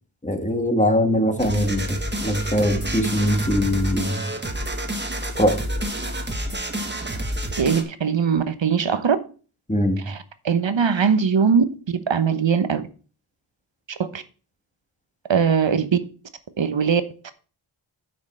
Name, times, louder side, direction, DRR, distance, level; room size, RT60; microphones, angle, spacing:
voice 1, 0.2-4.2 5.4-5.6 9.7-10.0, equal, 15° left, 1.6 m, -21 dB
sound 1, 1.4-7.8, right 1 dB, 20° right, 1.5 m, -28 dB
voice 2, 7.6-9.2 10.1-11.6 12.1-12.9 13.9-14.2 15.3-16.0 16.6-17.0, right 6 dB, 60° right, 1.1 m, -20 dB
9.6 x 5.8 x 4.4 m
wide cardioid pair, 75°, 50 cm